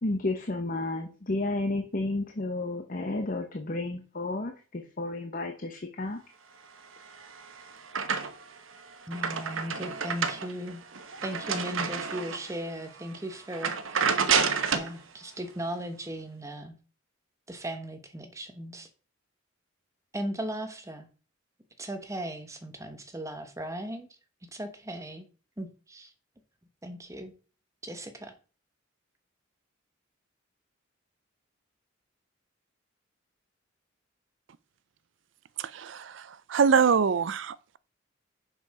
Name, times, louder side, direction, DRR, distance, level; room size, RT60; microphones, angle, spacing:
voice 1, 0.0-6.2, left 2 dB, 45° left, 0.9 m, -32 dB
sound 1, 7.0-8.6 8.9-12.6 13.0-13.2 13.5-14.9, right 6 dB, 85° right, 1.0 m, -29 dB
voice 2, 9.1-10.8 11.2-14.2 14.7-16.8 17.5-18.9 20.1-21.1 21.8-24.1 24.5-25.3 25.6-26.1 26.8-27.3 27.8-28.3, equal, 15° right, 1.0 m, -37 dB
voice 3, 35.6-37.8, right 6 dB, 65° right, 0.4 m, -25 dB
6.7 x 6.4 x 4.8 m
head